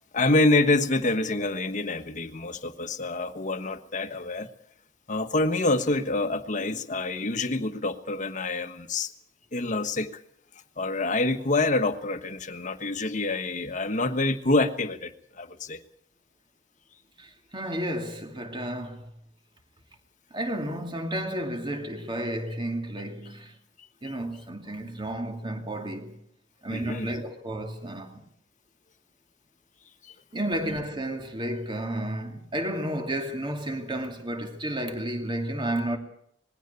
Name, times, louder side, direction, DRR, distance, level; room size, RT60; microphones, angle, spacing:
voice 1, 0.1-4.5 5.1-9.1 9.5-10.2 10.8-15.8 26.7-27.1, left 2 dB, 45° left, 1.4 m, -26 dB
voice 2, 17.2-19.1 20.3-23.6 24.0-26.2 26.6-28.2 30.3-36.0, right 1 dB, 25° right, 2.6 m, -32 dB
20.0 x 16.5 x 8.3 m
head